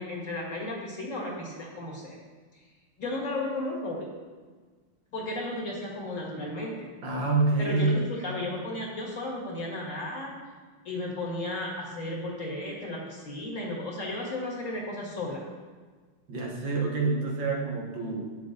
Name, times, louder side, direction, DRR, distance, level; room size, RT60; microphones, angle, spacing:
voice 1, 0.0-2.2 2.5-2.6 3.0-4.1 5.1-6.9 7.6-10.3 10.9-15.4, left 1 dB, 40° left, -3 dB, 2.0 m, -34 dB
voice 2, 7.0-8.0 16.3-18.3, right 3 dB, 65° right, -1 dB, 2.0 m, -27 dB
8.8 x 6.7 x 3.9 m, 1.5 s
omnidirectional pair, 2.2 m